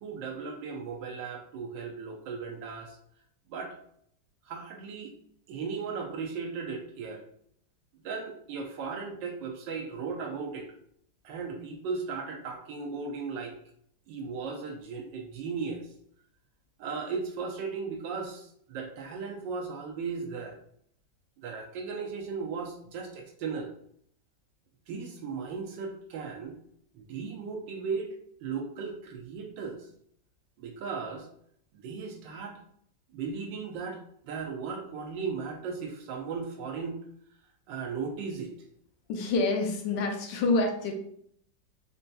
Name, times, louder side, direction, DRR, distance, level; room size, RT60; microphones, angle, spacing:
voice 1, 0.0-3.0 3.5-3.8 4.4-5.1 5.5-7.2 8.0-10.7 11.2-13.6 14.1-15.9 16.8-20.6 21.4-23.7 24.9-26.6 26.9-28.1 28.4-29.8 30.6-31.3 31.7-32.6 33.1-37.0 37.7-38.5, right 5 dB, 90° right, 2 dB, 1.4 m, -36 dB
voice 2, 39.1-40.9, left 3 dB, 80° left, 4 dB, 1.3 m, -27 dB
4.1 x 2.6 x 2.2 m, 0.66 s
omnidirectional pair, 2.0 m